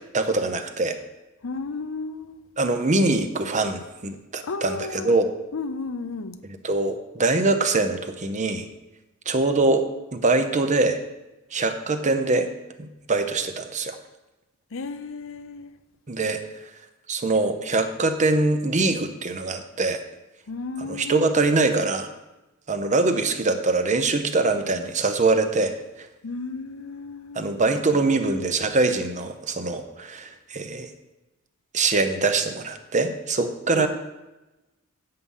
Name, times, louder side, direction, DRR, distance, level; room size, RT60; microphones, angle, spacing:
voice 1, 0.1-1.0 2.6-5.3 6.6-8.7 9.3-9.8 10.1-11.0 11.5-12.5 12.8-14.0 16.1-16.4 17.1-20.0 20.8-22.1 22.7-26.1 27.3-30.9 31.7-33.9, right 3 dB, 35° right, 8 dB, 0.8 m, -23 dB
voice 2, 1.4-2.4 4.4-5.1 5.5-6.4 14.7-15.7 20.5-21.3 26.2-27.6 33.7-33.9, left 3 dB, 65° left, 10 dB, 0.7 m, -33 dB
8.4 x 7.7 x 5.5 m, 1.0 s
head